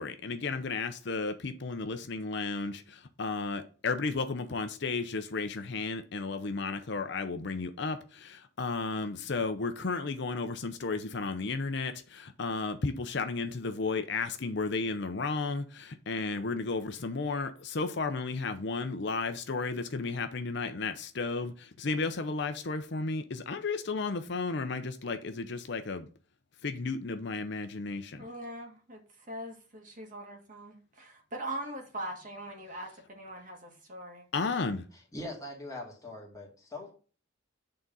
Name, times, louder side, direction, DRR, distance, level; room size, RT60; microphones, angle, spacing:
voice 1, 0.0-26.1 26.6-28.2 34.3-34.8, left 4 dB, 55° left, 0.6 m, -33 dB
voice 2, 28.2-29.0 29.3-34.2, right 1 dB, 40° right, 1.9 m, -41 dB
voice 3, 34.9-36.9, left 1 dB, 15° left, 2.2 m, -42 dB
8.6 x 3.9 x 5.4 m
head